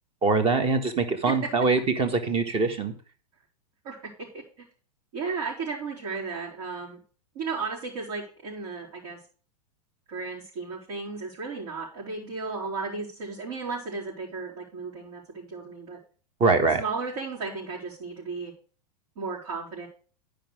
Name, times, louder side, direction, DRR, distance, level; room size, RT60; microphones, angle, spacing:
voice 1, 0.2-2.9 16.4-16.8, right 4 dB, 25° right, 8 dB, 1.6 m, -23 dB
voice 2, 3.8-4.6 5.1-7.0 7.3-9.2 10.1-16.0 16.8-18.5 19.2-19.9, right 4 dB, 65° right, -8 dB, 4.2 m, -34 dB
10.5 x 5.1 x 6.3 m, 0.40 s
hypercardioid pair, 105°, 21 cm